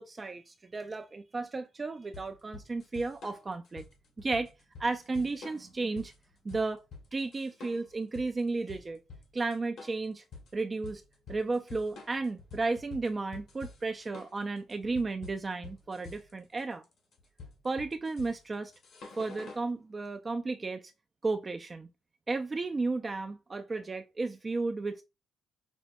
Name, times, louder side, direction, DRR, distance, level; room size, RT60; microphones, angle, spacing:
voice 1, 0.0-3.8 4.2-4.5 4.8-6.1 6.4-6.8 7.1-9.0 9.3-10.2 10.5-11.0 11.3-16.8 17.6-18.7 19.2-20.9 21.2-21.9 22.3-25.0, right 3 dB, 30° right, 0.3 m, -33 dB
sound 1, 2.1-19.7, left 4 dB, 70° left, 1.4 m, -49 dB
5.2 x 2.2 x 2.5 m
cardioid pair, 90°, 0 cm